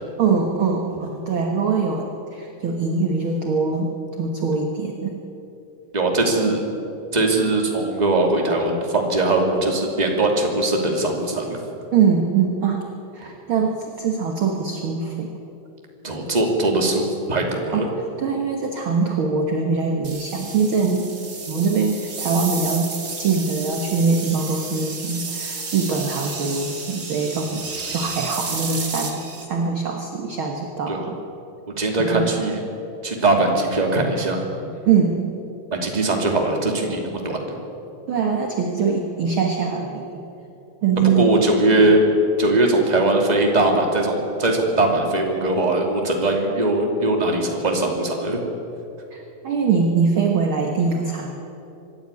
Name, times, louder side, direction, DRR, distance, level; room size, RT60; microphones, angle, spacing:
voice 1, 0.2-3.9 4.2-5.1 6.5-6.6 11.9-12.8 13.1-15.3 17.7-17.9 18.2-21.1 21.5-22.9 23.2-31.2 32.0-32.3 34.8-35.3 38.1-40.3 40.8-41.4 41.7-41.8 49.1-51.5, right 5 dB, 60° right, 2 dB, 1.4 m, -23 dB
voice 2, 5.9-6.6 7.1-11.6 16.0-17.9 30.9-31.1 31.8-32.6 33.0-34.4 35.7-37.6 41.2-42.0 42.4-48.4, right 2 dB, 15° right, 1 dB, 2.1 m, -20 dB
sound 1, 20.0-29.4, right 4 dB, 30° right, 1.6 m, -32 dB
25.0 x 11.0 x 9.8 m, 2.9 s
omnidirectional pair, 4.3 m